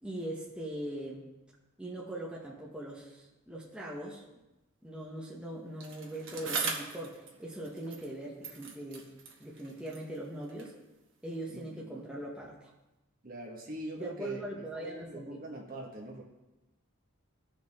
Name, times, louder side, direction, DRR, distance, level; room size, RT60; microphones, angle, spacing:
voice 1, 0.0-1.3 1.8-4.2 4.8-9.0 9.4-10.7 11.2-12.7 14.0-15.4, right 1 dB, 5° right, -5 dB, 1.0 m, -41 dB
Bicycle, 5.8-8.2 8.4-10.8 11.6-11.7, right 4 dB, 60° right, 1.3 m, -40 dB
voice 2, 11.5-12.0 13.2-16.2, right 2 dB, 40° right, 0 dB, 1.4 m, -43 dB
15.5 x 5.2 x 3.6 m, 1.0 s
head